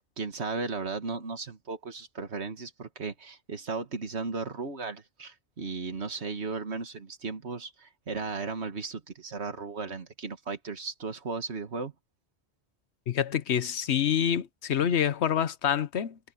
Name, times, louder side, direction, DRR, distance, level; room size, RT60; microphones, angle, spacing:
voice 1, 0.2-11.9, right 4 dB, 85° right, 2.0 m, -35 dB
voice 2, 13.1-16.2, left 9 dB, 85° left, 1.2 m, -27 dB
omnidirectional pair, 1.1 m